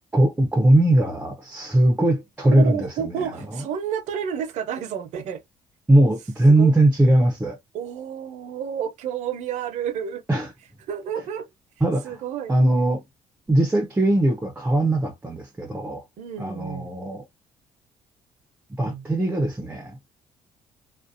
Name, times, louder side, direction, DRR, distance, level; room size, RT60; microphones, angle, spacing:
voice 1, 0.1-3.2 3.5-3.6 5.9-7.6 10.3-10.5 11.8-12.2 12.5-13.0 13.5-16.0 16.4-17.3 18.8-20.1, right 1 dB, 15° right, 0.6 m, -20 dB
voice 2, 2.5-5.4 6.5-6.7 7.7-10.2 10.9-11.5 12.0-12.5 16.2-17.0 18.8-19.0, right 8 dB, 75° right, 0.7 m, -30 dB
2.5 x 2.2 x 2.5 m
cardioid pair, 90°, 12 cm